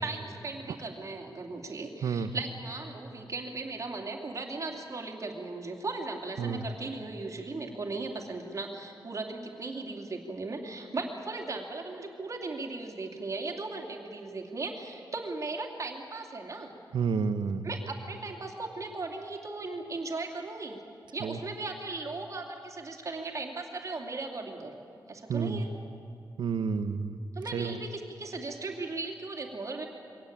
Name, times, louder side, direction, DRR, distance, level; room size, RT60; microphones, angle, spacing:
voice 1, 0.0-16.7 17.6-20.8 21.1-25.7 27.3-29.9, right 3 dB, 40° right, 2 dB, 2.9 m, -37 dB
voice 2, 16.9-17.7 21.2-21.4 25.3-25.7 26.4-27.2 27.5-27.8, right 5 dB, 90° right, 11 dB, 1.0 m, -30 dB
23.5 x 17.5 x 8.8 m, 2.5 s
wide cardioid pair, 120°, 8 cm